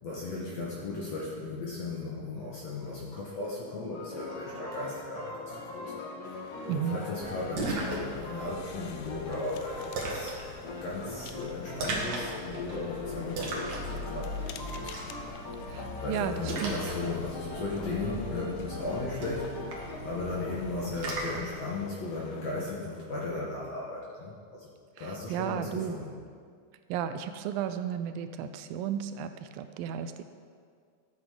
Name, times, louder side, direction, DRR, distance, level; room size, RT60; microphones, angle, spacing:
voice 1, 0.0-5.9 6.6-10.5 10.8-14.9 16.0-19.5 20.0-24.7 25.0-26.1, left 3 dB, 60° left, -4 dB, 1.9 m, -36 dB
sound 1, 3.9-20.0, left 2 dB, 40° left, 2.7 m, -42 dB
sound 2, 6.2-22.8, left 8 dB, 80° left, 2.3 m, -49 dB
voice 2, 6.7-7.0 15.7-16.7 25.0-26.0 26.9-30.2, right 9 dB, 80° right, 10 dB, 2.2 m, -34 dB
Splash splatter, 7.2-21.5, right 1 dB, 55° right, 2.7 m, -38 dB
13.0 x 8.3 x 5.0 m, 2.1 s
omnidirectional pair, 4.4 m